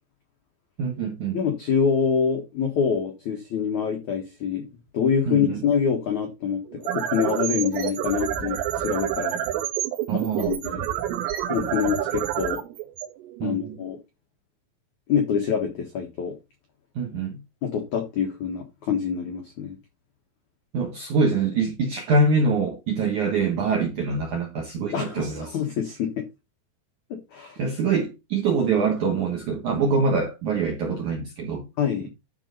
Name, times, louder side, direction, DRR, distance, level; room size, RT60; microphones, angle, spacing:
voice 1, 0.8-1.4 5.3-5.6 10.1-10.6 13.4-13.8 17.0-17.4 20.7-25.6 27.6-31.7, right 4 dB, 70° right, 1.8 m, -24 dB
voice 2, 1.3-4.7 4.9-9.4 10.1-10.8 11.5-12.6 13.4-14.0 15.1-16.4 17.6-19.8 24.9-26.3 27.1-27.6 31.8-32.1, left 7 dB, 85° left, 1.7 m, -26 dB
sound 1, 6.7-13.8, right 12 dB, 90° right, 3.7 m, -28 dB
11.5 x 4.0 x 5.5 m
omnidirectional pair, 5.7 m